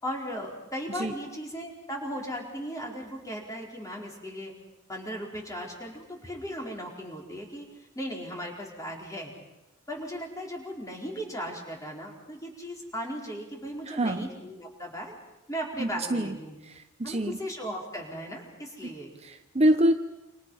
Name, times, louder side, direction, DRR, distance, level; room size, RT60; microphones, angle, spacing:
voice 1, 0.0-4.5 4.9-7.7 7.9-9.3 9.9-15.1 15.5-16.5 17.0-19.1, equal, 15° left, 0 dB, 4.6 m, -37 dB
voice 2, 13.9-14.3 15.8-16.4 16.6-17.4 18.8-18.9 19.2-20.0, right 1 dB, 30° right, 7 dB, 0.8 m, -26 dB
28.5 x 26.5 x 5.7 m, 0.96 s
head